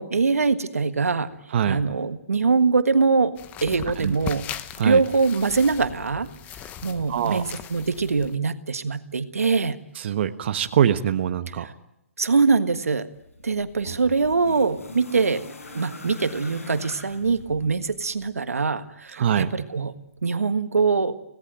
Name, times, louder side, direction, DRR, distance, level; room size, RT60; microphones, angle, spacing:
voice 1, 0.0-1.4 1.6-3.3 3.6-4.5 4.8-6.3 6.8-9.8 11.6-11.7 12.2-13.1 13.4-15.4 15.7-19.9 20.2-21.1, right 4 dB, 80° right, 11 dB, 1.6 m, -23 dB
sound 1, 3.4-8.4, left 10 dB, 20° left, 1.1 m, -38 dB
voice 2, 7.1-7.4 10.0-11.7 19.2-19.5, right 9 dB, 50° right, 9 dB, 1.3 m, -23 dB
sound 2, 13.1-18.3 19.4-19.5, left 3 dB, 80° left, 6.3 m, -42 dB
25.5 x 18.0 x 9.2 m, 0.85 s
hypercardioid pair, 140°, 8 cm